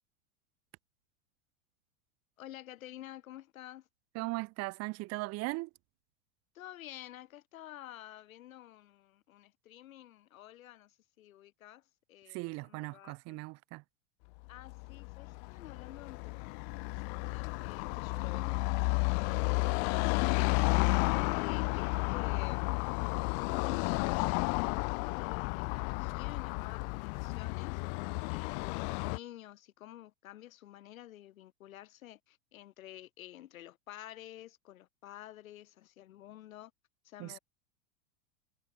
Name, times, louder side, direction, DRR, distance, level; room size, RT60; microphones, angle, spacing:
voice 1, 2.4-3.9 6.5-11.8 12.1-12.4 12.6-13.4 14.5-19.6 19.9-20.9 21.3-22.9 23.2-27.8 28.3-36.7 37.0-37.4, left 13 dB, 80° left, 1.9 m, -50 dB
voice 2, 4.1-5.7 12.3-13.8 37.2-37.4, right 24 dB, 40° right, 0.6 m, -38 dB
Car passing by / Traffic noise roadway noise, 14.5-29.2, left 40 dB or more, 50° left, 0.7 m, -32 dB
hypercardioid pair, 100°, 41 cm